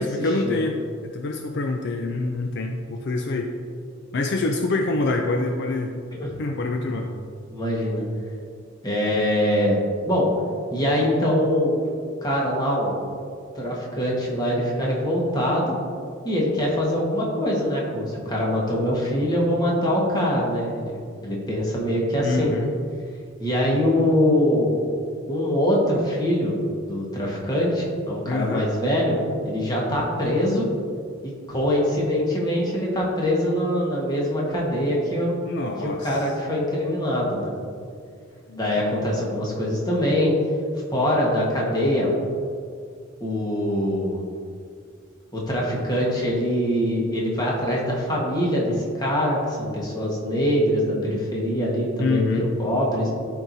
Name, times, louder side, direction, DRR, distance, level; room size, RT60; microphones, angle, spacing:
voice 1, 0.0-3.5 4.1-6.0 6.4-7.1 22.2-22.7 28.3-28.7 35.4-36.2 38.5-38.6 52.0-52.5, left 2 dB, 55° left, 3 dB, 0.4 m, -26 dB
voice 2, 7.5-8.0 8.8-9.8 10.1-10.3 10.7-11.8 12.2-13.0 13.5-15.7 16.2-22.5 23.4-24.7 25.3-26.5 26.8-29.2 29.4-30.7 31.2-35.3 35.8-37.5 38.6-40.3 40.9-42.1 43.2-44.2 45.3-53.1, equal, 20° left, -4 dB, 1.4 m, -23 dB
13.0 x 4.6 x 2.7 m, 2.2 s
head